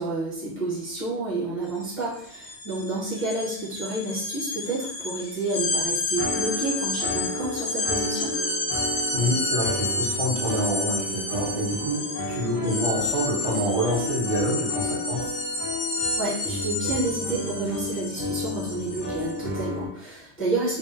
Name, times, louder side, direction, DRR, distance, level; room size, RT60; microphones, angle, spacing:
voice 1, 0.0-8.3 16.2-20.8, right 2 dB, 15° left, -9 dB, 0.6 m, -30 dB
sound 1, 1.7-1.8 2.1-19.4, left 2 dB, 60° left, 0.8 m, -30 dB
sound 2, 6.2-19.9, left 2 dB, 20° right, 0.7 m, -33 dB
voice 2, 9.0-15.3, equal, 75° right, -5 dB, 1.3 m, -27 dB
2.6 x 2.1 x 2.4 m, 0.70 s
omnidirectional pair, 1.2 m